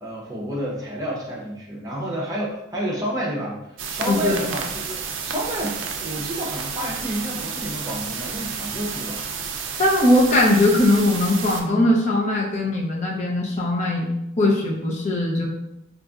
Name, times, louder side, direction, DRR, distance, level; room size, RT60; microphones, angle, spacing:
voice 1, 0.0-3.6 3.9-9.3, equal, 20° right, -4 dB, 0.7 m, -30 dB
sound 1, 3.8-11.6, right 6 dB, 70° right, 0.4 m, -31 dB
voice 2, 4.1-4.4 9.8-14.1 14.4-15.4, left 1 dB, 35° left, -3 dB, 0.5 m, -20 dB
4.0 x 2.5 x 2.4 m, 0.85 s
head